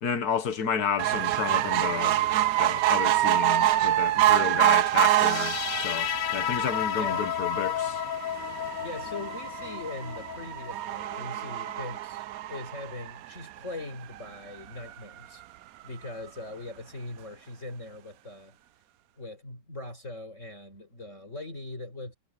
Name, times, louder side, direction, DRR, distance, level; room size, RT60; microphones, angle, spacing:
voice 1, 0.0-2.2 2.6-8.0, left 7 dB, 55° left, 1.8 m, -31 dB
sound 1, 1.0-13.6 14.2-14.3 14.5-14.6 14.9-15.0, right 14 dB, 75° right, 0.8 m, -26 dB
sound 2, 5.0-12.0, left 13 dB, 75° left, 1.3 m, -33 dB
voice 2, 8.8-15.4 15.8-18.6 19.2-22.2, left 2 dB, 40° left, 5.1 m, -40 dB
omnidirectional pair, 2.0 m